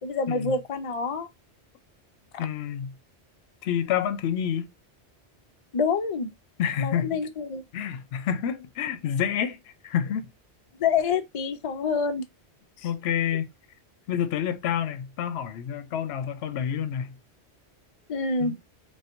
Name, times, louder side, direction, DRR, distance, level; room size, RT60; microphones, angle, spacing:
voice 1, 0.0-1.3 5.7-6.3 6.8-7.6 10.8-12.2 12.8-12.9 18.1-18.5, left 5 dB, 45° left, 0.4 m, -27 dB
voice 2, 2.4-3.0 3.6-4.7 6.6-7.2 7.7-10.3 12.8-13.5 14.1-17.2 18.4-18.6, left 9 dB, 70° left, 0.8 m, -28 dB
4.3 x 2.4 x 2.4 m
omnidirectional pair, 1.1 m